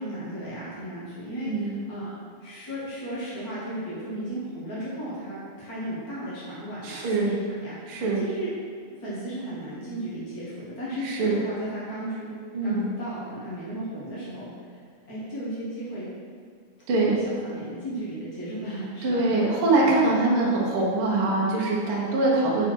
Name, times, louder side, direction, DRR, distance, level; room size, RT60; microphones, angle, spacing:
voice 1, 0.0-2.1 2.4-8.5 9.0-12.3 12.6-14.8 15.0-16.1 17.1-19.3, right 1 dB, 85° left, -9 dB, 0.8 m, -35 dB
voice 2, 1.4-1.8 6.8-7.3 7.9-8.2 11.0-11.4 12.5-12.9 16.9-17.2 19.0-22.7, right 2 dB, 85° right, -4 dB, 1.2 m, -23 dB
8.6 x 4.4 x 4.5 m, 2.1 s
omnidirectional pair, 4.5 m